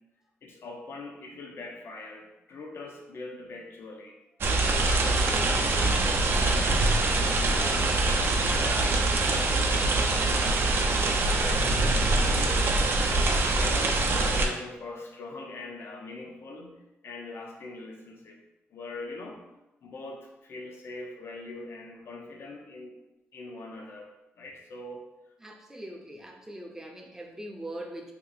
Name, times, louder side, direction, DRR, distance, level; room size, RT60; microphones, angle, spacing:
voice 1, 0.4-4.2 4.7-6.1 6.4-12.7 13.2-18.4 18.7-19.4 19.8-22.9 23.3-25.1, left 2 dB, 60° left, 1 dB, 0.6 m, -42 dB
sound 1, 4.4-14.5, right 2 dB, 55° right, 0.5 m, -24 dB
voice 2, 25.4-28.1, right 1 dB, 10° right, 1 dB, 0.6 m, -41 dB
2.8 x 2.4 x 4.0 m, 0.97 s
cardioid pair, 95°, 5 cm